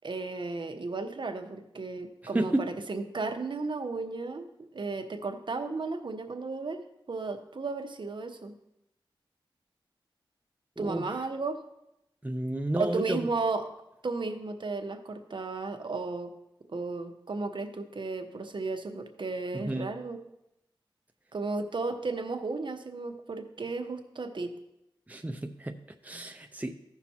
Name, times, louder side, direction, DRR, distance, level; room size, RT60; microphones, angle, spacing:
voice 1, 0.0-8.5 10.8-11.6 12.8-13.6 14.0-16.3 16.7-20.2 21.3-24.6, right 3 dB, 65° right, 6 dB, 0.9 m, -34 dB
voice 2, 2.3-2.7 10.8-11.1 12.2-13.3 19.5-19.9 25.1-26.8, right 1 dB, 15° right, 6 dB, 0.6 m, -32 dB
15.5 x 5.9 x 2.9 m, 0.87 s
wide cardioid pair, 55°, 9 cm